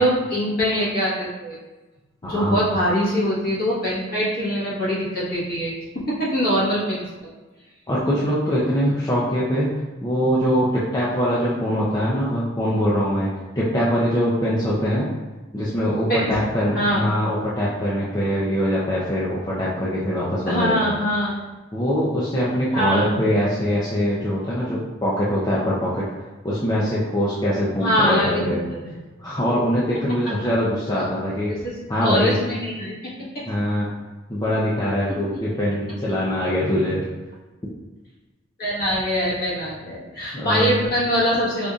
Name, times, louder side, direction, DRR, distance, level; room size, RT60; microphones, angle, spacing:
voice 1, 0.0-1.6 2.2-5.7 6.2-7.3 16.1-16.3 16.7-17.1 20.5-21.3 22.7-23.2 27.8-28.9 31.6-31.7 32.0-32.9 33.3-33.4 38.6-41.7, equal, 50° left, -8 dB, 1.3 m, -23 dB
voice 2, 2.2-2.7 7.9-9.7 10.0-13.3 13.5-15.1 15.5-21.0 21.7-26.0 26.4-28.6 29.2-31.5 31.9-32.4 33.5-33.9 34.3-37.1 40.3-40.8, equal, 20° left, -8 dB, 0.4 m, -23 dB
5.0 x 2.6 x 2.3 m, 1.2 s
head